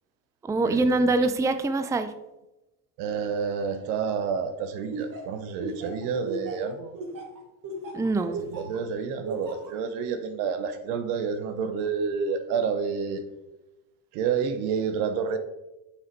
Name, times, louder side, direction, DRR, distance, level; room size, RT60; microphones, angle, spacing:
voice 1, 0.4-2.1 7.9-8.5, right 2 dB, 5° right, 0.5 m, -24 dB
voice 2, 3.0-7.0 8.5-13.2 14.1-15.4, right 6 dB, 80° right, 1.1 m, -29 dB
Laughter, 4.9-8.8 9.2-9.7, right 2 dB, 45° right, 2.0 m, -36 dB
6.6 x 5.8 x 4.6 m
supercardioid pair, 90°, 46 cm